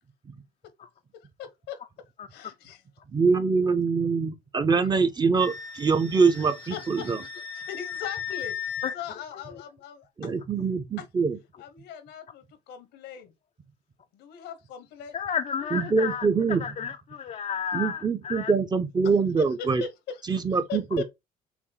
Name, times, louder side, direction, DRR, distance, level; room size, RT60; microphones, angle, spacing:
voice 1, 1.4-1.8 2.3-2.8 6.7-8.5 8.9-10.4 11.6-13.3 14.1-15.2 19.0-20.2 20.7-21.0, left 8 dB, 85° left, 1.1 m, -39 dB
voice 2, 3.1-7.2 10.2-11.4 15.7-16.6 17.7-19.8 20.3-21.0, right 4 dB, 25° right, 0.6 m, -24 dB
Wind instrument woodwind instrument, 5.4-8.9, left 8 dB, 60° right, 2.4 m, -36 dB
voice 3, 15.1-16.3 16.6-18.5, left 7 dB, 40° left, 0.4 m, -31 dB
5.9 x 2.1 x 4.0 m
cardioid pair, 110°, 17 cm